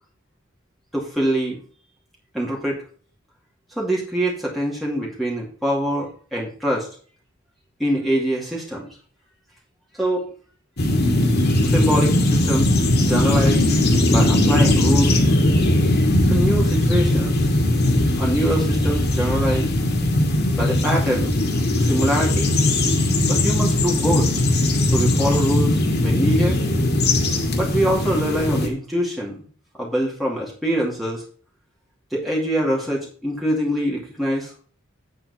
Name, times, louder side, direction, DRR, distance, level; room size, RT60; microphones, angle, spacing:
voice 1, 0.9-1.6 2.3-2.8 3.7-6.9 7.8-8.9 9.9-10.3 11.6-12.8 13.0-13.7 14.1-15.2 16.3-17.5 18.2-19.7 20.5-21.3 21.8-22.5 23.3-24.3 24.8-26.6 27.5-29.4 29.8-31.2 32.1-34.5, equal, ahead, -4 dB, 2.4 m, -24 dB
sound 1, 10.8-28.7, left 1 dB, 50° left, 2.3 m, -19 dB
9.2 x 7.7 x 4.3 m, 0.43 s
head